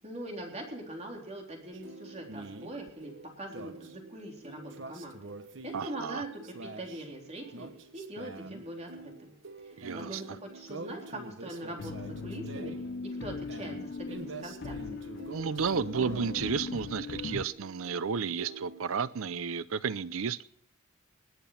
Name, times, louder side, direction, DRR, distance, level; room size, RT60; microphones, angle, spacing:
voice 1, 0.0-5.3 5.6-9.3 9.6-12.7 13.0-14.8, right 1 dB, 30° right, 3.8 m, -42 dB
sound 1, 1.7-19.1, right 2 dB, 60° right, 1.2 m, -46 dB
voice 2, 5.7-6.2 9.8-10.4 15.3-20.4, right 6 dB, 80° right, 0.5 m, -32 dB
sound 2, 11.8-17.4, left 4 dB, 55° left, 0.4 m, -39 dB
20.0 x 9.0 x 5.7 m
head